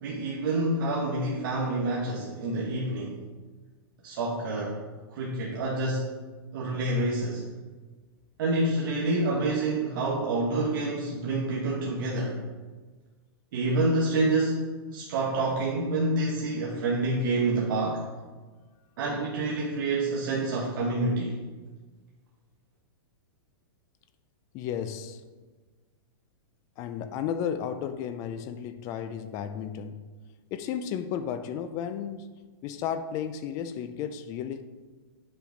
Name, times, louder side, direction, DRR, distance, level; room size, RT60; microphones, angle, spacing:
voice 1, 0.0-3.2 4.0-4.8 5.1-6.1 6.5-7.4 8.4-12.4 13.5-18.0 19.0-21.4, right 2 dB, 55° right, -4 dB, 1.2 m, -27 dB
voice 2, 24.5-25.2 26.8-30.0 30.5-32.3 32.6-34.6, left 8 dB, 25° left, 10 dB, 0.3 m, -33 dB
7.7 x 5.0 x 3.9 m, 1.3 s
hypercardioid pair, 155°, 13 cm